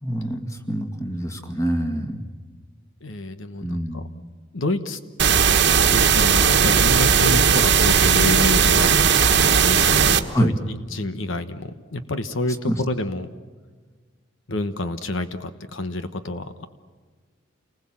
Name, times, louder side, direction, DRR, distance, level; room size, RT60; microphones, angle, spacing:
voice 1, 0.0-2.2 3.6-4.0 10.3-10.5 12.7-12.8, equal, 15° left, 5 dB, 2.0 m, -25 dB
voice 2, 3.0-4.0 4.5-5.0 5.9-13.3 14.5-16.7, left 2 dB, 75° left, 9 dB, 1.2 m, -28 dB
sound 1, 5.2-10.2, right 6 dB, 60° right, 1.3 m, -17 dB
29.0 x 20.5 x 7.5 m, 1.4 s
head